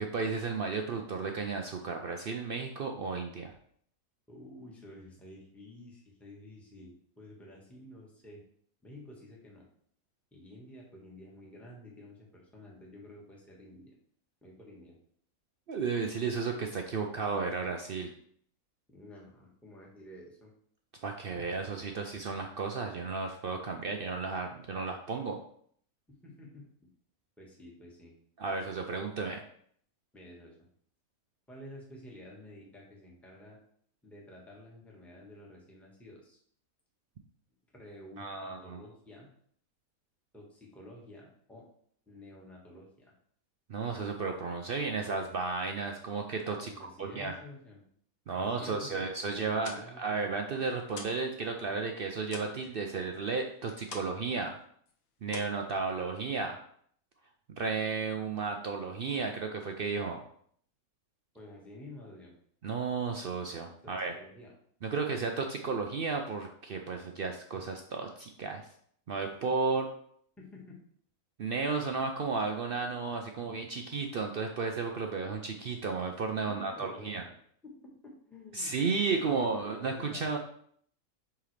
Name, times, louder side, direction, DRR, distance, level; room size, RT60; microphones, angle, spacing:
voice 1, 0.0-3.5 15.7-18.1 21.0-25.4 28.4-29.4 38.2-38.8 43.7-46.7 47.0-47.3 48.3-54.5 55.2-56.6 57.6-60.2 62.6-64.1 64.8-68.6 69.1-69.9 71.4-77.2 78.5-80.4, right 4 dB, 65° right, 3 dB, 0.5 m, -33 dB
voice 2, 4.3-8.4 8.8-9.7 10.3-13.9 14.4-15.0 18.9-20.5 26.1-26.7 27.4-28.1 30.1-30.7 31.5-33.6 34.0-36.4 37.7-39.3 40.3-41.7 42.1-43.1 46.6-47.8 48.3-49.1 49.4-50.1 61.3-62.3 63.8-64.5 70.4-70.8 76.5-77.2 77.6-78.8 79.1-80.4, left 1 dB, ahead, -3 dB, 1.3 m, -50 dB
sound 1, 49.6-51.3 51.6-54.3 54.6-54.9 55.2-56.3, left 4 dB, 70° left, 1.2 m, -48 dB
8.7 x 3.7 x 3.3 m, 0.62 s
omnidirectional pair, 1.5 m